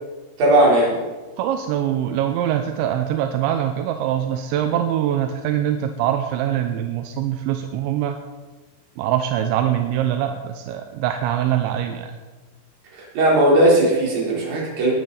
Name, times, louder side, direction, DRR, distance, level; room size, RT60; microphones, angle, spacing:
voice 1, 0.4-1.0 12.9-14.9, right 1 dB, 50° right, -4 dB, 5.3 m, -17 dB
voice 2, 1.4-8.2 9.0-12.1, right 10 dB, 85° right, 6 dB, 3.1 m, -23 dB
20.5 x 12.0 x 4.0 m, 1.2 s
omnidirectional pair, 5.3 m